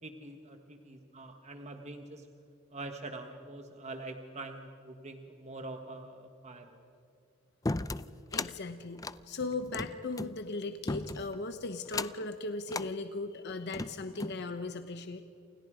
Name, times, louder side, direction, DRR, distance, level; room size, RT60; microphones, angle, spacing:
voice 1, 0.0-2.3 2.7-6.8, right 2 dB, 35° right, 5 dB, 1.5 m, -44 dB
sound 1, 7.7-8.5 9.0-10.3 10.9-11.4 11.9-12.3 12.7-12.9 13.5-14.4, left 2 dB, 15° left, 0.5 m, -36 dB
voice 2, 8.3-15.2, left 3 dB, 55° left, 8 dB, 1.1 m, -38 dB
28.5 x 28.5 x 5.1 m, 2.6 s
head